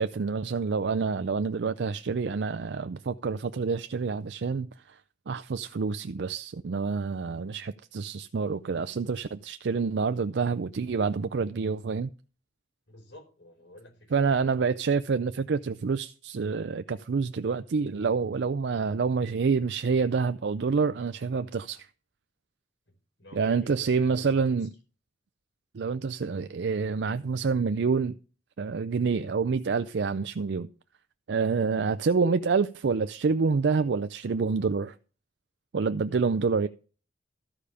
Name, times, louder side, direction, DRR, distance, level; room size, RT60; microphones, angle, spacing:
voice 1, 0.0-5.0 5.3-12.1 14.1-21.9 23.3-24.7 25.7-28.1 28.6-30.7 31.3-35.0 35.7-36.7, right 5 dB, 70° right, 0.4 m, -27 dB
voice 2, 12.9-14.4 23.2-24.3 31.5-31.7, left 1 dB, 85° left, 4.5 m, -49 dB
13.5 x 5.0 x 6.8 m
head